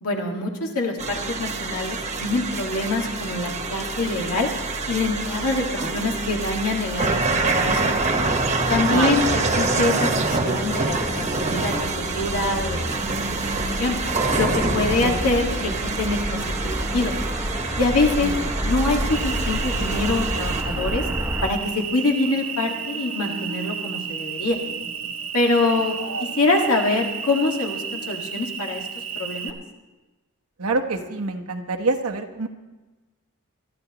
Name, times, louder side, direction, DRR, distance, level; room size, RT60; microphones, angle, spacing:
voice 1, 0.0-4.5 4.9-7.8 8.7-9.3 9.6-13.0 13.3-13.4 13.8-14.0 14.4-17.1 17.8-18.3 18.6-21.0 21.4-24.6 25.3-26.0 26.4-28.8 29.2-29.5, left 2 dB, 90° left, 1 dB, 2.0 m, -25 dB
sound 1, 1.0-20.6, right 3 dB, 30° right, 1.2 m, -26 dB
sound 2, 4.6-21.5, equal, 10° right, 0.8 m, -32 dB
voice 2, 8.9-9.2 14.8-15.1 18.2-18.3 26.0-26.3 30.6-32.5, right 3 dB, 85° right, 4 dB, 1.2 m, -27 dB
Cricket, 19.1-29.5, right 6 dB, 65° right, 1.0 m, -32 dB
22.5 x 13.0 x 3.0 m, 1.2 s
head